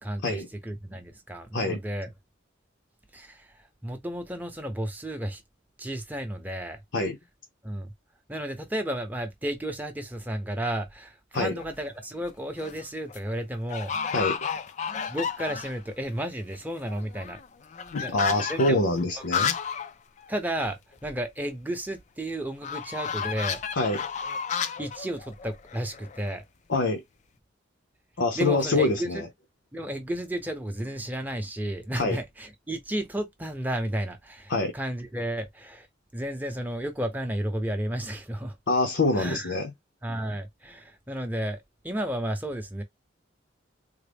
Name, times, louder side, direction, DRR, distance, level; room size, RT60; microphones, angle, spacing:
voice 1, 0.0-2.1 3.1-5.4 5.8-6.8 7.6-7.9 8.3-14.1 15.1-17.4 18.0-18.2 18.5-18.8 19.3-19.4 20.3-23.6 24.8-26.4 28.3-29.2 29.7-35.9 36.1-38.6 39.1-39.6 40.0-42.8, right 1 dB, 10° right, 0.7 m, -33 dB
sound 1, 11.4-11.8 12.4-12.8 13.1-13.2 13.7-15.9 16.2-16.3 16.5-19.9 20.2-20.3 20.6-20.7 22.6-26.4, left 7 dB, 40° left, 0.3 m, -32 dB
voice 2, 14.1-14.5 17.9-19.6 23.7-24.0 26.7-27.0 28.2-29.3 31.9-32.2 34.5-34.7 38.7-39.7, left 2 dB, 70° left, 0.7 m, -25 dB
3.7 x 2.0 x 3.4 m
head